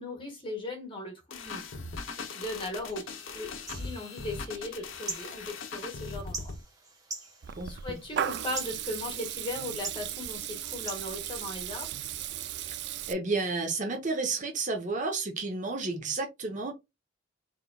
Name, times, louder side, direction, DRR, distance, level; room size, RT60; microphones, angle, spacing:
voice 1, 0.0-1.6 2.2-3.1 3.3-6.5 7.6-11.9, left 1 dB, 25° left, 1.7 m, -38 dB
sound 1, 1.3-6.6, left 4 dB, 80° left, 0.9 m, -40 dB
sound 2, 2.6-11.9, right 3 dB, 20° right, 1.4 m, -45 dB
Water tap faucet / Liquid, 7.4-13.1, right 10 dB, 60° right, 0.4 m, -36 dB
voice 2, 7.5-8.0 13.1-16.7, right 3 dB, 40° right, 1.0 m, -31 dB
4.1 x 3.9 x 2.3 m
head